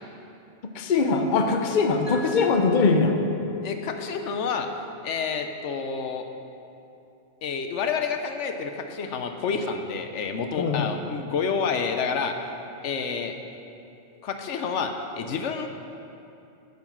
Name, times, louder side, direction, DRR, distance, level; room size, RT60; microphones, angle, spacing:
voice 1, 0.7-3.2 10.6-10.9, left 4 dB, 50° left, 5 dB, 0.8 m, -22 dB
Mallet percussion, 2.1-5.0, left 6 dB, 10° left, 0.7 m, -36 dB
voice 2, 3.6-4.7 5.0-6.3 7.4-12.4 12.8-13.3 14.2-15.7, left 5 dB, 80° left, 6 dB, 1.0 m, -29 dB
10.5 x 6.0 x 6.0 m, 2.7 s
omnidirectional pair, 1.2 m